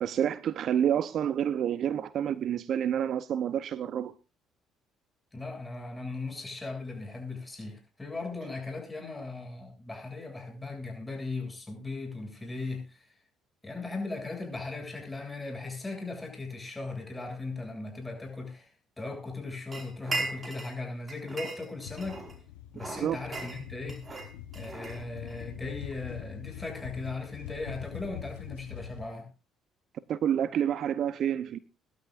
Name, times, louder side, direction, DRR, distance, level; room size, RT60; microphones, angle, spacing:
voice 1, 0.0-4.1 22.9-23.2 30.1-31.6, right 9 dB, 55° right, 0.7 m, -28 dB
voice 2, 5.3-13.1 13.6-22.2 22.7-24.0 24.5-29.3, left 3 dB, 15° left, 7.7 m, -38 dB
sound 1, 19.7-20.8 21.1-22.4 22.8-25.5, right 3 dB, 30° right, 4.8 m, -38 dB
sound 2, 21.8-29.0, left 11 dB, 80° left, 1.1 m, -44 dB
23.0 x 12.0 x 2.5 m
hypercardioid pair, 55°, 0 cm